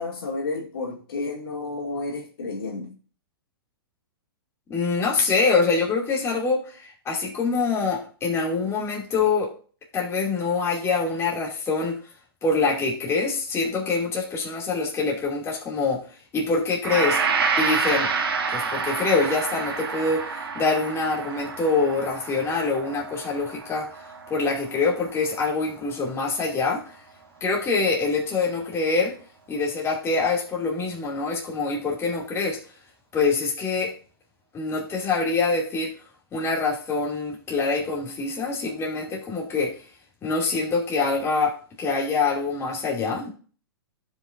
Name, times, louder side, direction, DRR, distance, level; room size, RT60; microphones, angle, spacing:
voice 1, 0.0-2.9, left 3 dB, 70° left, 2.2 m, -31 dB
voice 2, 4.7-9.5 9.9-12.0 12.4-16.0 16.3-17.2 17.6-18.1 18.5-23.9 24.3-27.0 27.4-29.1 29.5-32.6 33.1-33.9 34.5-35.9 36.3-39.8 40.2-43.3, left 4 dB, 20° left, 2.4 m, -25 dB
Gong, 16.8-25.3 25.6-25.8, right 4 dB, 75° right, 1.5 m, -28 dB
15.0 x 5.3 x 2.5 m
hypercardioid pair, 120°, 13 cm